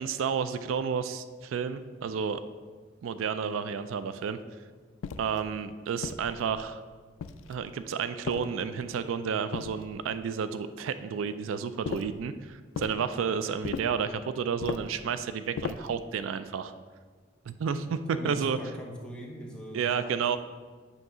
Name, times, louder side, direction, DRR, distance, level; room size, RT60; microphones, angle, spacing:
voice 1, 0.0-2.4 3.0-4.4 5.2-6.8 7.5-16.7 17.5-18.6 19.7-20.4, right 6 dB, 90° right, 12 dB, 0.4 m, -31 dB
sound 1, 5.0-5.4 6.0-6.7 7.2-7.7 8.3-8.9 9.5-10.2 11.8-12.2 12.7-13.0 13.6-14.0 14.6-15.0 15.6-16.0, left 5 dB, 85° left, 0.3 m, -37 dB
voice 2, 18.1-20.2, equal, 5° left, -2 dB, 0.8 m, -41 dB
7.8 x 2.8 x 6.1 m, 1.5 s
head